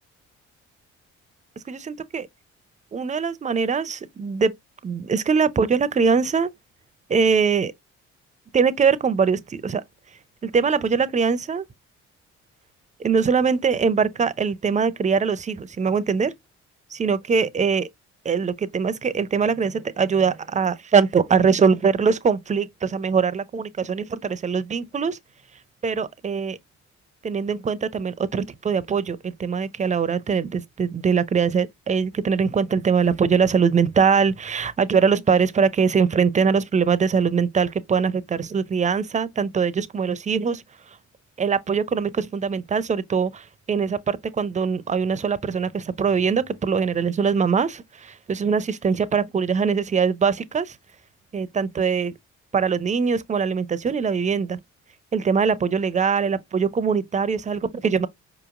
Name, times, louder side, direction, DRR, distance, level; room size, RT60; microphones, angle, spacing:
voice 1, 1.7-2.3 2.9-4.5 4.8-6.5 7.1-7.7 8.5-9.8 10.4-11.6 13.0-16.3 16.9-17.9 18.2-25.2 25.8-26.6 27.2-40.6 41.4-50.8 51.3-52.1 52.5-54.6 55.1-58.1, right 6 dB, 25° right, 0.5 m, -22 dB
4.7 x 2.9 x 2.4 m
supercardioid pair, 70°, 30 cm